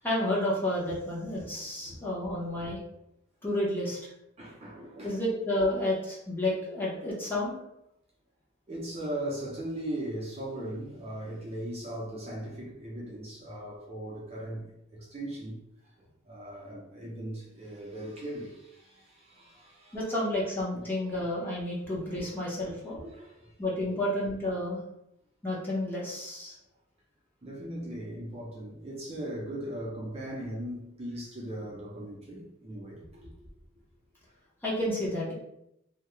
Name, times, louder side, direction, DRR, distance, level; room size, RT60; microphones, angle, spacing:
voice 1, 0.0-2.8 3.4-4.1 5.0-7.5 19.9-23.0 23.6-24.8 25.4-26.5 34.6-35.3, left 1 dB, 10° left, 0.7 m, -30 dB
voice 2, 1.9-2.3 2.6-2.7 4.4-5.2 8.7-15.6 16.0-20.0 20.7-20.9 22.1-22.2 22.6-23.5 23.9-24.1 27.4-33.5, right 1 dB, 30° right, 0.5 m, -39 dB
2.3 x 2.1 x 3.0 m
head